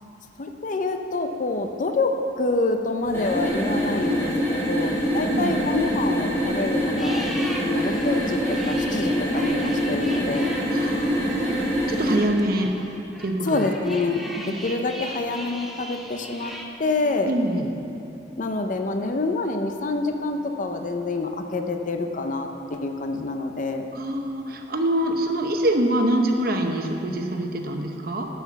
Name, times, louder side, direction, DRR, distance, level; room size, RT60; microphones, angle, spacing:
voice 1, 0.4-2.1 2.4-7.2 7.6-10.5 13.5-14.2 14.6-17.3 18.4-23.9, left 3 dB, 45° left, 5 dB, 0.6 m, -27 dB
sound 1, 3.0-12.3, equal, 15° left, 2.2 m, -25 dB
voice 2, 5.1-5.6 10.7-11.5 11.9-12.7 13.2-13.5 14.3-14.6 17.2-17.7 23.9-28.3, right 1 dB, 55° right, 3 dB, 0.9 m, -25 dB
sound 2, 6.9-16.6, equal, ahead, 0.9 m, -39 dB
12.0 x 5.7 x 7.0 m, 2.8 s
head